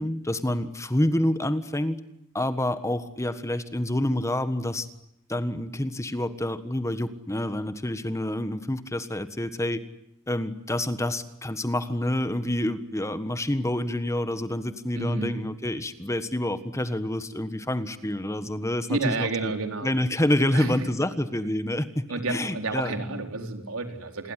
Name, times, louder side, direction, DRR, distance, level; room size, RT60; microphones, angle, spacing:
voice 1, 0.0-2.0 2.3-4.9 5.3-9.8 10.3-19.5 19.8-23.0, left 1 dB, 15° left, 11 dB, 1.4 m, -28 dB
voice 2, 14.9-15.4 18.9-19.9 20.5-20.8 22.1-24.3, right 3 dB, 85° right, 5 dB, 4.3 m, -30 dB
28.0 x 21.5 x 9.9 m, 0.82 s
head